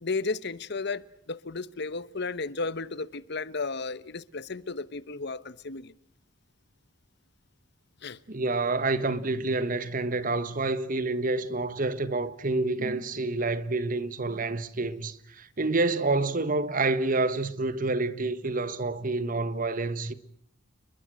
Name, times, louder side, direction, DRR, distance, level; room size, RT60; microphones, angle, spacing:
voice 1, 0.0-5.9 8.0-8.2, left 3 dB, 60° left, 1.0 m, -34 dB
voice 2, 8.3-20.1, right 3 dB, 45° right, 1.4 m, -28 dB
30.0 x 21.5 x 6.4 m
head